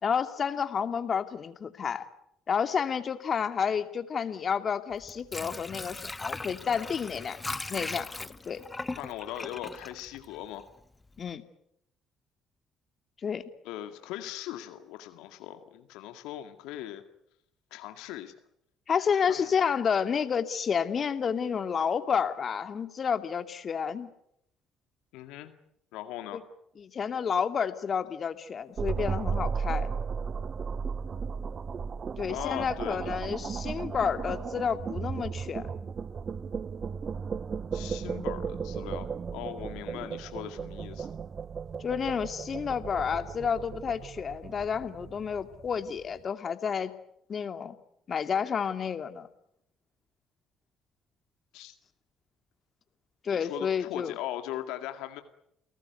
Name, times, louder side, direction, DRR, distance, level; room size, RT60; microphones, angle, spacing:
voice 1, 0.0-2.1 2.5-7.4 7.7-8.6 11.2-11.4 13.2-13.4 18.9-24.1 26.3-26.4 26.8-29.9 32.2-35.6 41.8-46.9 47.3-47.8 48.1-49.3 53.2-54.1, left 7 dB, 45° left, 9 dB, 2.5 m, -30 dB
Water / Sink (filling or washing), 4.9-10.8 11.2-11.3, left 2 dB, 20° left, 1.3 m, -39 dB
voice 2, 8.9-10.7 13.6-17.0 17.7-18.3 19.2-19.5 25.1-25.5 25.9-26.4 32.3-33.2 37.7-41.1 51.5-51.7 53.3-55.2, left 13 dB, 70° left, 7 dB, 2.0 m, -39 dB
sound 1, 28.8-46.0, right 6 dB, 45° right, 0.9 m, -35 dB
30.0 x 18.5 x 9.4 m, 0.78 s
hypercardioid pair, 50°, 0 cm